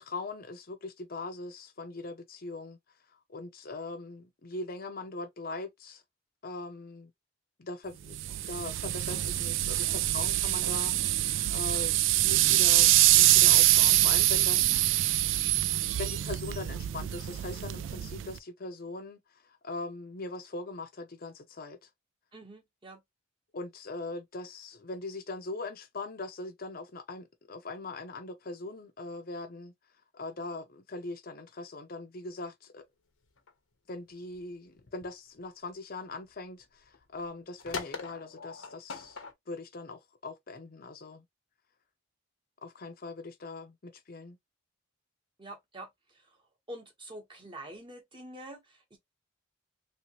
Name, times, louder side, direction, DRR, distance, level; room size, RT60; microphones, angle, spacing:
voice 1, 0.0-2.8 3.3-6.0 6.4-7.1 7.6-8.2 8.5-15.1 15.8-21.8 23.5-29.7 30.1-32.8 33.9-39.2 39.5-41.2 42.6-44.4, left 2 dB, 45° left, 0.6 m, -41 dB
sound 1, 8.1-18.4, right 15 dB, 65° right, 0.3 m, -25 dB
voice 2, 22.3-23.0 45.4-46.4 46.7-49.0, right 1 dB, 25° right, 1.0 m, -46 dB
sound 2, 33.2-33.5 34.0-35.4 35.7-35.8 36.3-36.4 36.6-37.3 37.6-39.3, left 4 dB, 80° left, 0.9 m, -41 dB
3.2 x 2.9 x 3.0 m
head